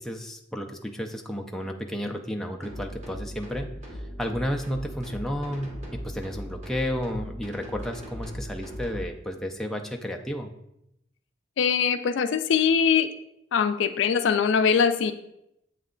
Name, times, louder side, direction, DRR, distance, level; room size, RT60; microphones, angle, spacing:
voice 1, 0.0-10.5, equal, ahead, 2 dB, 0.4 m, -32 dB
sound 1, 2.6-9.1, equal, 40° right, 1.1 m, -39 dB
voice 2, 11.6-13.1 13.5-15.1, left 6 dB, 70° left, 10 dB, 0.4 m, -22 dB
7.8 x 3.2 x 3.7 m, 0.80 s
head